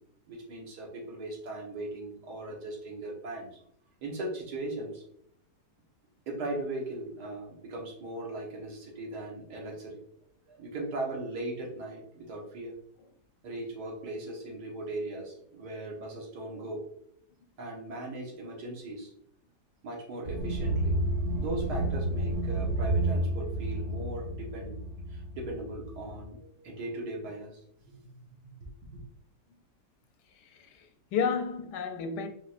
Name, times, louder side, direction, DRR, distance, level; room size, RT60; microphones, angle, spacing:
voice 1, 0.3-3.6 4.0-5.0 6.3-10.0 10.5-12.7 13.4-16.8 17.6-19.1 19.8-21.0 21.4-24.8 25.1-28.0 28.4-28.7 28.9-29.0, right 2 dB, 85° right, 1.7 m, -38 dB
sound 1, 20.3-26.2, right 1 dB, 45° right, 1.0 m, -30 dB
voice 2, 30.3-32.3, left 6 dB, 90° left, 1.2 m, -32 dB
4.5 x 3.7 x 2.4 m
omnidirectional pair, 1.7 m